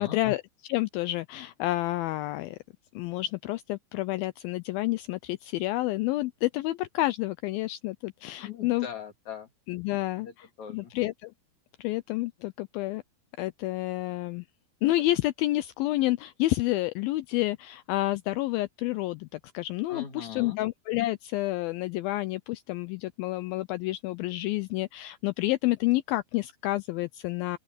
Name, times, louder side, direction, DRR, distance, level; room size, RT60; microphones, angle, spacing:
voice 1, 0.0-2.6 3.0-8.9 9.7-10.3 10.7-11.3 11.8-13.0 13.4-14.5 14.8-27.6, left 18 dB, 80° left, 2.2 m, -29 dB
voice 2, 8.4-9.5 10.2-10.9 19.9-20.6, left 8 dB, 50° left, 3.8 m, -40 dB
open air
omnidirectional pair, 4.7 m